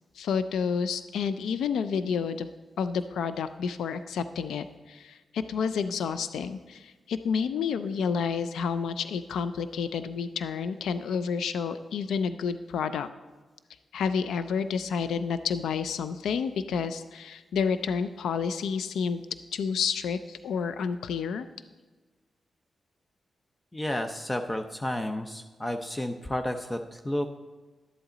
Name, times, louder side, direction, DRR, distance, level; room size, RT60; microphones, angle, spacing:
voice 1, 0.2-2.5 2.8-13.1 13.9-19.2 19.5-21.5, left 6 dB, 85° left, 12 dB, 0.3 m, -30 dB
voice 2, 23.7-27.4, left 1 dB, 25° left, 6 dB, 0.7 m, -31 dB
11.0 x 7.9 x 3.9 m, 1.3 s
supercardioid pair, 50°, 0 cm